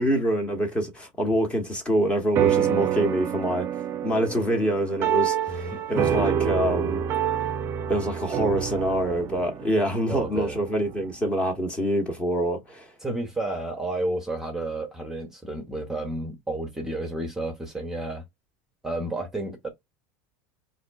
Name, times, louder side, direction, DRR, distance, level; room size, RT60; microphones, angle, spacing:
voice 1, 0.0-3.7 4.0-7.0 7.9-12.9, equal, 15° left, 0.9 m, -25 dB
sound 1, 2.4-11.1, right 9 dB, 35° right, 0.4 m, -27 dB
voice 2, 5.5-6.2 10.1-10.6 13.0-18.2 18.8-19.7, right 2 dB, 5° right, 0.8 m, -31 dB
5.0 x 2.6 x 2.2 m
supercardioid pair, 135°, 8 cm